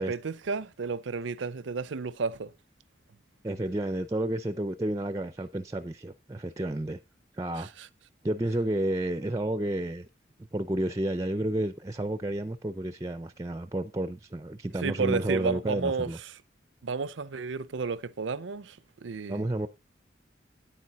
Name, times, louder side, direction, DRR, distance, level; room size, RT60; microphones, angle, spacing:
voice 1, 0.0-2.5 7.6-7.7 14.8-16.1 16.8-19.4, right 4 dB, 85° right, 0.6 m, -32 dB
voice 2, 3.4-7.0 7.3-7.7 8.2-10.1 10.5-16.2 19.3-19.7, right 1 dB, 20° right, 0.4 m, -31 dB
9.1 x 9.0 x 4.0 m
head